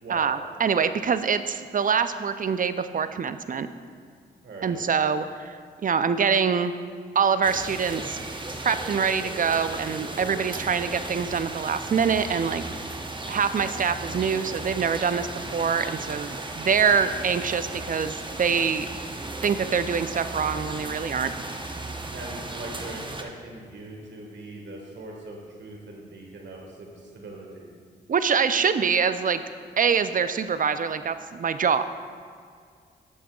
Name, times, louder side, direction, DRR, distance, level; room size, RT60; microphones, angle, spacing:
voice 1, 0.1-3.7 4.6-5.6 5.8-6.7 7.1-8.2 8.6-12.6 13.3-18.9 19.4-21.3 28.1-29.4 29.8-31.8, right 6 dB, 45° right, 11 dB, 0.5 m, -25 dB
voice 2, 4.4-4.8 22.1-27.7, right 2 dB, 65° right, 0 dB, 1.6 m, -41 dB
sound 1, 7.4-23.2, right 2 dB, 25° right, 0.9 m, -36 dB
11.5 x 7.2 x 2.4 m, 2.2 s
supercardioid pair, 40°, 20 cm